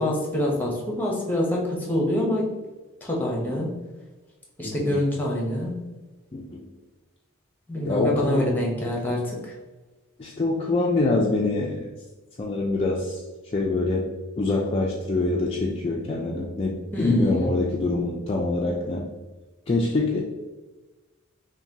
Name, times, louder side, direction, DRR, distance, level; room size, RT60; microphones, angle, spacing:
voice 1, 0.0-2.5 3.0-3.8 4.6-5.8 7.7-9.5 16.9-17.5, left 1 dB, 10° left, -2 dB, 0.7 m, -26 dB
voice 2, 4.6-5.0 6.3-6.7 7.8-8.5 10.2-11.9 12.4-13.2 13.5-14.1 14.4-19.1 19.7-20.2, left 2 dB, 30° left, -3 dB, 0.3 m, -25 dB
5.6 x 2.2 x 2.8 m, 1.2 s
head